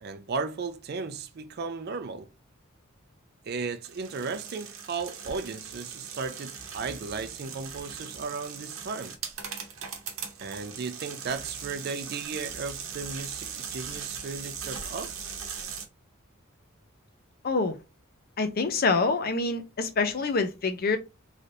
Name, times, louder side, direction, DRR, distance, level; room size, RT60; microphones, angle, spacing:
voice 1, 0.0-2.3 3.5-9.2 10.4-15.1, right 4 dB, 50° right, 0.4 m, -35 dB
sound 1, 3.8-15.8, right 6 dB, 80° right, 0.8 m, -39 dB
voice 2, 17.4-17.8 18.4-21.0, left 3 dB, 45° left, 0.5 m, -26 dB
3.2 x 2.6 x 2.6 m
head